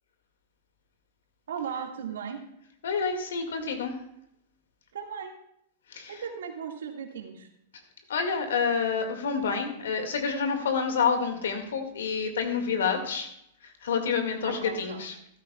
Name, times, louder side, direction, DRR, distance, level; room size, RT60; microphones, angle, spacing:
voice 1, 1.5-2.4 4.9-5.3 6.2-7.5 14.4-15.0, right 7 dB, 75° right, 3 dB, 1.8 m, -36 dB
voice 2, 2.8-4.0 5.9-6.2 8.1-13.3 13.6-15.2, left 5 dB, 75° left, 5 dB, 1.9 m, -28 dB
14.5 x 13.0 x 2.3 m, 0.75 s
hypercardioid pair, 105°, 0 cm